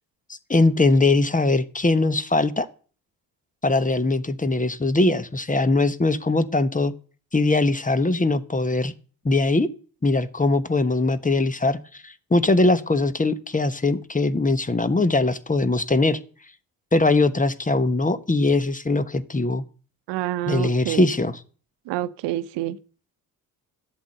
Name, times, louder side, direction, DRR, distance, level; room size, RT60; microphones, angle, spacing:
voice 1, 0.5-2.7 3.6-6.9 7.3-8.9 9.2-9.7 10.0-16.2 16.9-19.6 20.5-21.4, left 2 dB, 20° left, 1.3 m, -21 dB
voice 2, 20.1-21.0 21.9-22.8, right 14 dB, 70° right, 0.9 m, -27 dB
12.0 x 8.0 x 7.9 m
hypercardioid pair, 45°, 45 cm